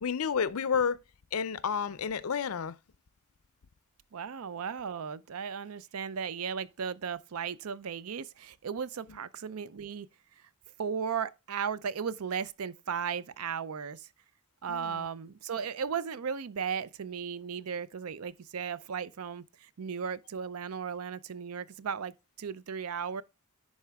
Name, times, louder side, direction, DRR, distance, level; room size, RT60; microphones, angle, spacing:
voice 1, 0.0-1.0 1.3-2.7 14.7-15.1, left 6 dB, 80° left, 0.5 m, -30 dB
voice 2, 4.1-10.1 10.8-14.1 14.6-22.1 22.4-23.2, right 6 dB, 90° right, 0.5 m, -36 dB
10.5 x 4.2 x 3.5 m
head